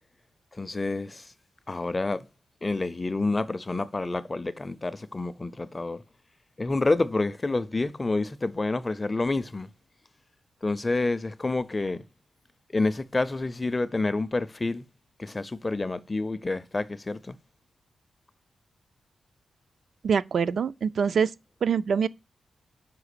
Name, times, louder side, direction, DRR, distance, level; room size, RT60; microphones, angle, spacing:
voice 1, 0.5-1.3 1.7-2.3 2.6-6.0 6.6-9.7 10.6-12.0 12.7-14.8 15.2-17.4, left 2 dB, 25° left, 0.4 m, -28 dB
voice 2, 20.0-21.3 21.6-22.1, right 6 dB, 65° right, 0.4 m, -24 dB
6.0 x 4.8 x 6.6 m
wide cardioid pair, 120°, 0 cm